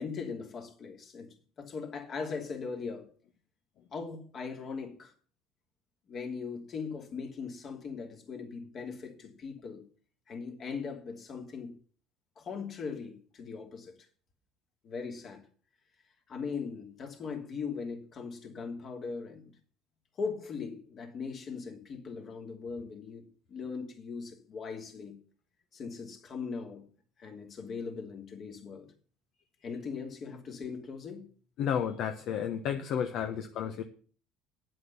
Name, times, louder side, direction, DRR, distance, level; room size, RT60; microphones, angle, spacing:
voice 1, 0.0-3.1 3.9-5.1 6.1-9.8 10.3-11.7 12.4-13.9 14.8-15.4 16.3-19.5 20.2-25.1 25.7-26.8 27.2-28.9 29.6-31.3, left 5 dB, 50° left, 2.9 m, -39 dB
voice 2, 31.6-33.8, left 8 dB, 65° left, 1.0 m, -32 dB
9.7 x 7.8 x 7.0 m
supercardioid pair, 80°, 0 cm